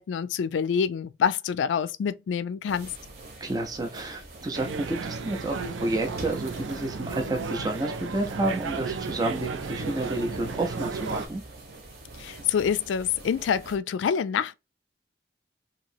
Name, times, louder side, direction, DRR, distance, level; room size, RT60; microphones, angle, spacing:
voice 1, 0.0-2.9 12.2-14.6, left 7 dB, 85° left, 0.3 m, -26 dB
sound 1, 2.7-13.8, right 2 dB, 55° right, 1.1 m, -45 dB
voice 2, 3.4-11.4, right 2 dB, 20° right, 0.5 m, -30 dB
sound 2, 4.5-11.3, right 4 dB, 90° right, 0.5 m, -34 dB
2.9 x 2.7 x 2.6 m
head